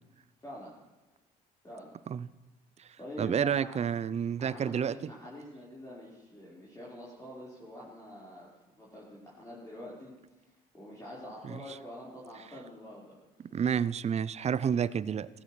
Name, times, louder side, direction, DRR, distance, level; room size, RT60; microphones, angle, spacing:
voice 1, 0.4-0.7 1.6-1.9 3.0-3.8 4.4-10.1 10.7-13.2, left 1 dB, 15° left, -8 dB, 4.6 m, -46 dB
voice 2, 3.2-5.0 11.4-11.6 13.5-15.3, right 8 dB, 35° right, 19 dB, 0.5 m, -29 dB
17.0 x 15.0 x 3.3 m, 1.1 s
hypercardioid pair, 55°, 19 cm